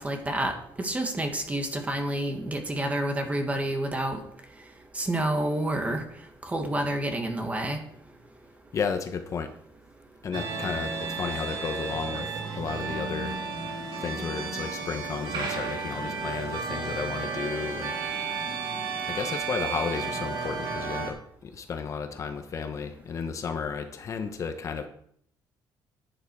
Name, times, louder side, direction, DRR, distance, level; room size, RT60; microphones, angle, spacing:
voice 1, 0.0-4.2 4.9-6.0 6.4-7.8, right 1 dB, 20° right, 4 dB, 2.0 m, -29 dB
voice 2, 8.7-9.5 10.2-13.4 14.0-17.9 18.2-18.3 19.1-24.9, left 6 dB, 40° left, 7 dB, 1.1 m, -33 dB
sound 1, 10.3-21.1, right 4 dB, 85° right, 3.5 m, -33 dB
11.0 x 10.5 x 4.8 m, 0.66 s
cardioid pair, 135°, 8 cm